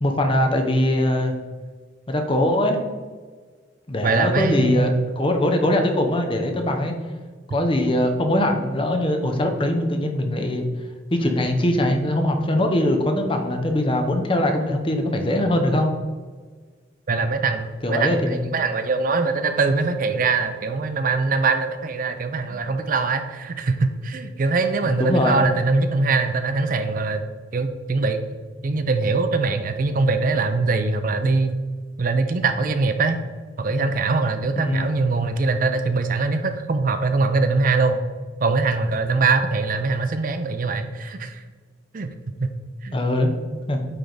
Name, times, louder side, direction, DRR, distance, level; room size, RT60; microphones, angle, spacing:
voice 1, 0.0-1.4 2.1-2.8 3.9-7.0 7.5-10.7 11.1-15.9 17.8-18.5 22.5-22.6 24.9-25.5 34.6-34.9 42.9-43.3 43.7-43.8, left 1 dB, 30° left, 4 dB, 0.7 m, -21 dB
voice 2, 4.0-5.1 17.1-27.2 27.5-28.2 28.6-31.5 32.0-33.2 33.6-38.1 38.4-41.4 41.9-42.1 42.4-42.5 42.8-43.0, right 3 dB, 45° right, 8 dB, 0.5 m, -22 dB
9.0 x 3.4 x 3.9 m, 1.5 s
head